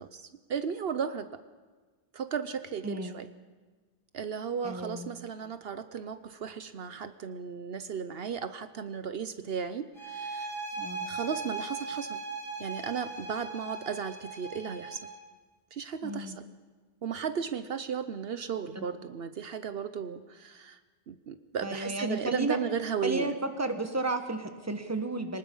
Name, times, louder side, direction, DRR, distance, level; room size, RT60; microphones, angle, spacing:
voice 1, 0.0-1.4 2.1-3.3 4.1-10.6 11.0-12.2 12.6-15.0 15.7-16.4 17.0-20.8 21.1-23.3, right 7 dB, 70° right, 11 dB, 1.0 m, -35 dB
voice 2, 2.8-3.2 4.6-5.1 10.8-11.1 16.0-16.4 18.7-18.9 21.6-22.6 23.0-23.3 23.6-25.4, right 2 dB, 15° right, 6 dB, 1.5 m, -32 dB
sound 1, 9.9-15.2, right 3 dB, ahead, 4.2 m, -39 dB
24.5 x 19.5 x 5.5 m, 1.4 s
omnidirectional pair, 1.0 m